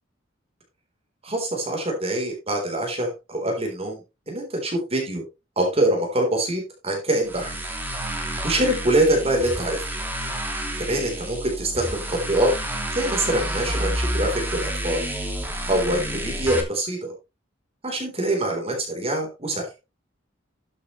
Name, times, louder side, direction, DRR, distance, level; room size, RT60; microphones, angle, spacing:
voice 1, 1.2-4.0 4.3-5.2 5.6-7.6 8.2-9.9 10.8-12.5 12.9-15.0 15.7-17.1 17.8-19.7, right 1 dB, 30° right, 2 dB, 3.8 m, -24 dB
sound 1, 7.2-16.6, right 1 dB, 10° right, 2.9 m, -29 dB
13.0 x 8.5 x 3.2 m, 0.25 s
head